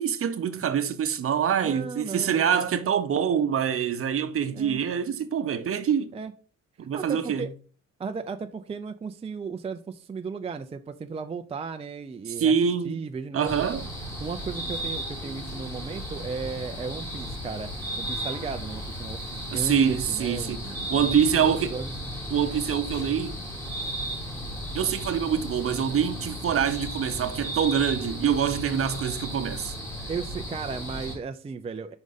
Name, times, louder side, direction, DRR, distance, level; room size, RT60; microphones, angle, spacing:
voice 1, 0.0-6.1 6.8-7.5 12.3-13.0 13.3-13.8 19.5-20.6 20.9-21.7 22.3-23.4 24.7-29.7, right 8 dB, 45° right, 0.8 m, -25 dB
voice 2, 1.6-2.7 4.5-4.8 6.1-6.3 6.9-7.5 8.0-12.5 12.8-13.7 14.2-17.7 18.0-21.9 30.1-31.9, right 5 dB, 20° right, 0.4 m, -35 dB
sound 1, 13.4-31.2, equal, 10° left, 2.5 m, -35 dB
5.3 x 4.8 x 4.0 m
cardioid pair, 90°, 30 cm